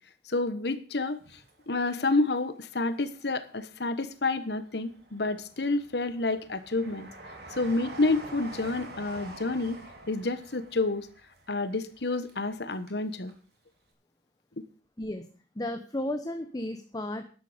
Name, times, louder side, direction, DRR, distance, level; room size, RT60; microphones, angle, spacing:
voice 1, 0.3-1.2 1.7-7.1 7.5-9.8 10.1-11.1 11.5-13.3, left 2 dB, 65° left, 11 dB, 1.2 m, -29 dB
Train, 1.1-2.3 2.8-3.7 4.3-13.0 13.3-13.4, right 2 dB, 65° right, 3.6 m, -47 dB
voice 2, 15.6-17.3, left 1 dB, 20° left, 7 dB, 0.9 m, -33 dB
13.5 x 11.5 x 5.1 m, 0.38 s
head